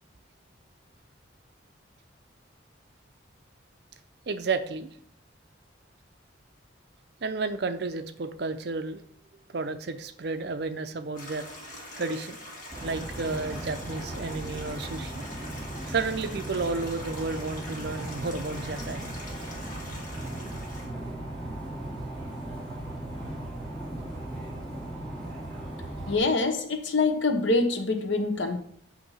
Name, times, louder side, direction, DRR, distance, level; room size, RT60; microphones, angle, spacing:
voice 1, 4.3-4.9 7.2-9.0 9.5-11.5 12.0-12.4 12.8-15.2 15.9-19.1, right 4 dB, 55° right, 0.5 m, -32 dB
Stream, 11.2-20.9, left 1 dB, 40° left, 1.4 m, -43 dB
sound 1, 12.7-26.2, right 1 dB, 5° left, 2.2 m, -37 dB
voice 2, 26.1-28.6, left 3 dB, 75° left, 0.9 m, -25 dB
8.1 x 2.7 x 5.6 m
head